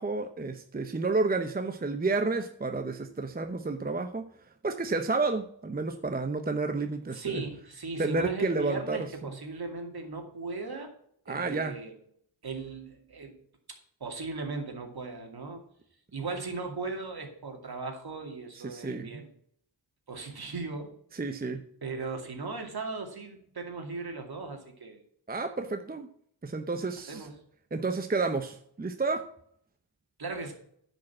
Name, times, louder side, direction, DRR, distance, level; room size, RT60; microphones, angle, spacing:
voice 1, 0.0-4.3 4.6-7.4 8.0-9.1 11.3-11.8 18.6-19.2 21.1-21.6 25.3-26.1 26.4-27.3 27.7-29.3, right 3 dB, 20° right, 7 dB, 0.8 m, -30 dB
voice 2, 7.1-10.9 11.3-12.0 12.4-13.3 14.0-15.6 16.1-19.3 20.1-20.9 21.8-25.0 27.1-27.4 30.2-30.5, right 3 dB, 55° right, 3 dB, 2.5 m, -37 dB
10.5 x 5.3 x 7.3 m, 0.66 s
wide cardioid pair, 90°, 45 cm